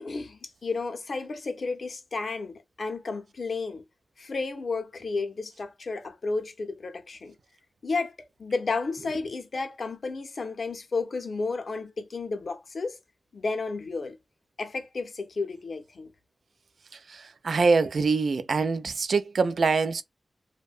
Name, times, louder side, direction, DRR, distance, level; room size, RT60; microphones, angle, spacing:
voice 1, 0.0-3.8 4.2-7.3 7.8-8.1 8.4-13.0 13.3-14.2 14.6-16.1, left 3 dB, 65° left, 0.6 m, -32 dB
voice 2, 17.1-20.0, right 4 dB, 80° right, 0.3 m, -24 dB
2.6 x 2.1 x 2.4 m
wide cardioid pair, 115°, 0 cm